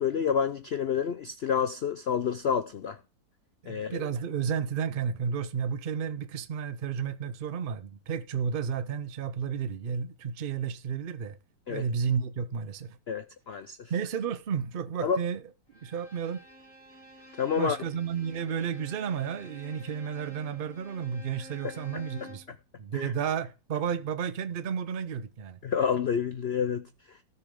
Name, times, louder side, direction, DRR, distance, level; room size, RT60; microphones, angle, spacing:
voice 1, 0.0-3.0 3.7-4.0 11.7-11.8 13.1-13.9 15.0-15.2 17.4-17.8 21.6-22.0 22.9-23.1 25.6-27.2, left 7 dB, 80° left, 0.5 m, -29 dB
voice 2, 3.6-11.4 11.7-13.0 13.9-15.4 15.8-16.4 17.6-22.4 22.8-25.6, right 7 dB, 70° right, 0.5 m, -32 dB
Bowed string instrument, 15.7-22.5, left 1 dB, 5° left, 3.0 m, -50 dB
18.0 x 6.5 x 3.7 m
omnidirectional pair, 2.0 m